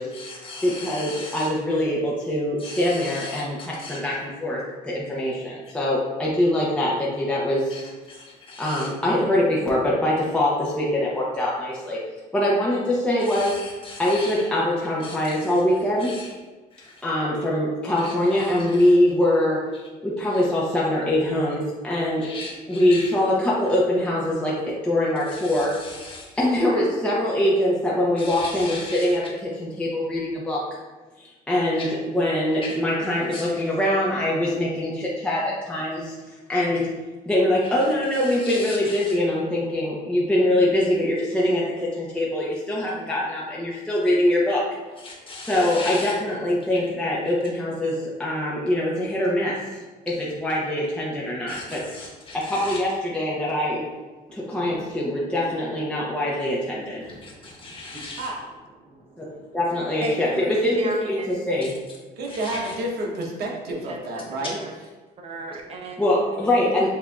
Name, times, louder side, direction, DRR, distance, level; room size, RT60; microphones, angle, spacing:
voice 1, 0.1-1.5 2.6-4.0 7.7-8.9 13.2-14.5 15.0-16.3 16.7-17.0 18.0-19.0 20.2-20.4 22.2-23.1 25.3-26.4 28.2-29.2 31.7-31.9 32.6-32.8 33.3-33.5 37.6-39.2 45.0-46.1 51.5-52.8 57.2-58.3 61.6-61.7 62.2-62.7, left 3 dB, 30° left, 1.3 m, -38 dB
voice 2, 0.6-7.9 8.6-12.0 12.3-13.6 14.0-16.2 17.0-19.6 20.0-22.3 22.7-25.7 26.4-29.2 29.6-30.6 31.2-36.2 36.5-36.9 37.3-44.7 45.5-49.8 50.4-51.8 52.3-53.8 54.3-57.1 59.2-59.3 59.5-61.7 66.0-66.9, left 1 dB, 5° left, 0.7 m, -23 dB
voice 3, 57.0-58.1 58.8-59.6 60.0-60.4 60.8-61.3 63.9-64.2 64.6-64.7 65.2-66.0, right 2 dB, 35° right, 0.7 m, -35 dB
voice 4, 62.2-64.6, right 1 dB, 70° right, 1.1 m, -30 dB
7.2 x 2.6 x 2.3 m
cardioid pair, 110°, 17 cm